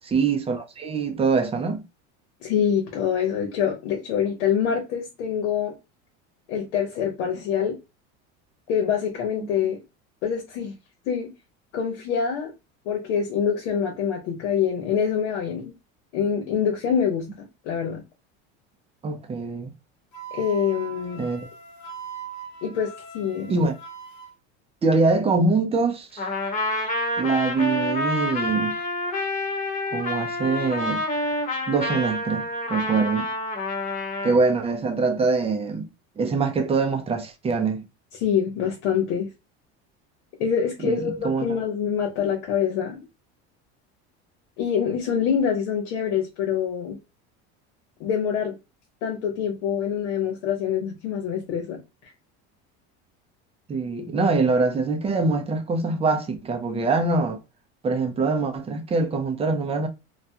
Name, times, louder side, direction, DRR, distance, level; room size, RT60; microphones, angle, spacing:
voice 1, 0.1-1.9 9.4-9.5 19.0-19.7 21.2-21.5 22.6-22.7 23.5-23.7 24.8-26.2 27.2-28.8 29.9-31.0 31.7-33.3 34.2-35.9 36.2-37.9 40.8-41.4 53.7-57.4 57.8-59.9, right 4 dB, 20° right, 0.5 m, -24 dB
voice 2, 2.4-5.7 6.5-7.8 8.7-9.8 10.2-10.7 11.1-11.3 11.7-12.5 12.8-15.7 16.1-18.0 20.3-21.2 22.6-23.5 38.2-39.3 40.4-43.1 44.6-47.0 48.0-48.5 49.0-52.1, left 8 dB, 85° left, 1.0 m, -25 dB
Wind instrument woodwind instrument, 20.1-24.3, right 6 dB, 60° left, 1.1 m, -40 dB
Trumpet, 26.2-34.4, left 2 dB, 25° left, 1.0 m, -28 dB
2.4 x 2.2 x 2.8 m
supercardioid pair, 120°, 33 cm